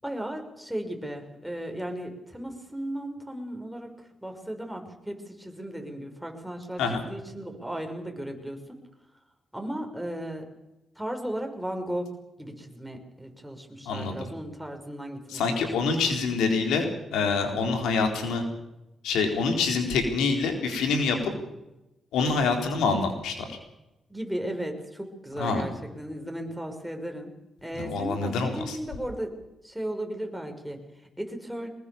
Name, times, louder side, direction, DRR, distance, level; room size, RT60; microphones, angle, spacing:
voice 1, 0.0-8.8 9.5-10.4 11.0-12.1 12.4-15.7 16.0-16.1 22.3-22.5 24.1-27.3 27.6-29.3 29.6-31.7, right 1 dB, 5° right, 3 dB, 6.1 m, -36 dB
voice 2, 13.9-14.3 15.3-18.4 19.0-21.3 22.1-23.6 25.4-25.6 27.8-28.8, left 4 dB, 75° left, 4 dB, 4.0 m, -26 dB
23.0 x 20.5 x 7.2 m, 0.96 s
hypercardioid pair, 40°, 0 cm